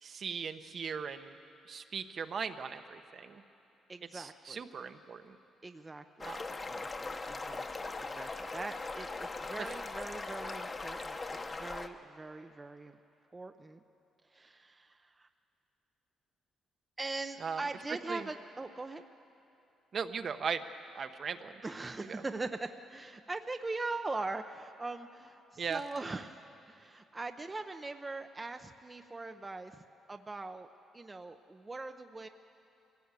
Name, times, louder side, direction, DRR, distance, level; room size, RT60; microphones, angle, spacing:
voice 1, 0.0-1.4 1.7-3.4 4.1-5.4 6.2-6.4 9.6-9.7 17.4-17.6 18.1-18.3 19.9-20.6 20.9-21.6 22.1-22.2 25.6-25.8, right 6 dB, 50° right, 8 dB, 1.0 m, -38 dB
voice 2, 3.9-4.6 5.6-13.0 13.3-13.8 14.3-15.3 17.0-19.0 21.6-29.8 30.1-30.7 30.9-32.3, right 3 dB, 25° right, 7 dB, 0.7 m, -41 dB
sound 1, 6.2-11.9, left 3 dB, 30° left, 1.1 m, -40 dB
22.5 x 16.5 x 8.2 m, 2.8 s
cardioid pair, 90°, 0 cm